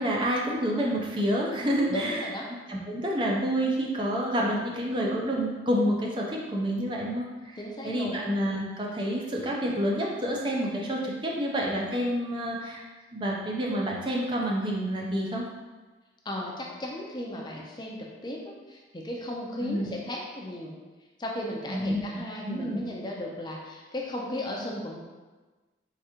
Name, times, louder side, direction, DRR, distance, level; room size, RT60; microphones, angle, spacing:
voice 1, 0.0-2.2 2.7-7.6 7.8-12.8 13.1-15.5 19.6-19.9 21.7-22.0 22.4-22.8, equal, 25° right, -2 dB, 0.5 m, -28 dB
voice 2, 1.9-2.5 7.6-8.2 16.2-18.0 18.2-20.8 21.2-25.0, left 1 dB, 25° left, -2 dB, 0.5 m, -35 dB
4.8 x 3.4 x 2.9 m, 1.3 s
head